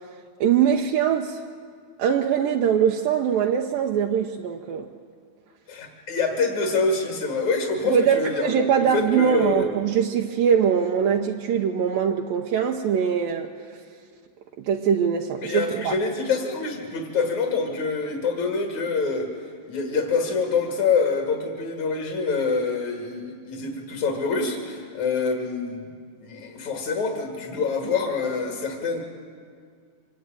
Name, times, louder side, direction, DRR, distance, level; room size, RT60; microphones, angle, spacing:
voice 1, 0.4-1.4 2.0-4.9 7.8-13.5 14.6-16.0, right 8 dB, 75° right, 1 dB, 2.5 m, -22 dB
voice 2, 5.7-8.5 8.8-9.7 15.4-19.3 19.7-25.9 26.2-29.0, left 4 dB, 50° left, 2 dB, 3.5 m, -26 dB
25.5 x 21.5 x 9.1 m, 2.1 s
omnidirectional pair, 4.4 m